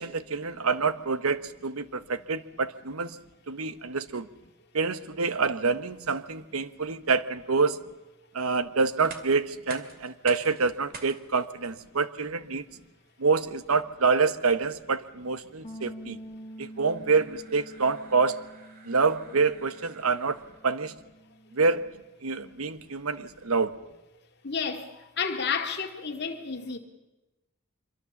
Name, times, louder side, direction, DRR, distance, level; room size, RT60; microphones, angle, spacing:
voice 1, 0.0-3.2 3.5-4.3 4.7-7.8 8.3-12.7 13.2-16.2 16.6-18.4 18.8-20.9 21.5-21.9 22.2-23.7, right 4 dB, 85° right, 1.0 m, -27 dB
sound 1, 8.9-20.8, right 4 dB, 45° right, 2.3 m, -50 dB
Bass guitar, 15.6-21.9, right 1 dB, 25° left, 1.5 m, -47 dB
voice 2, 24.4-24.8 25.2-26.8, left 5 dB, 50° left, 2.1 m, -30 dB
25.0 x 23.5 x 7.1 m
head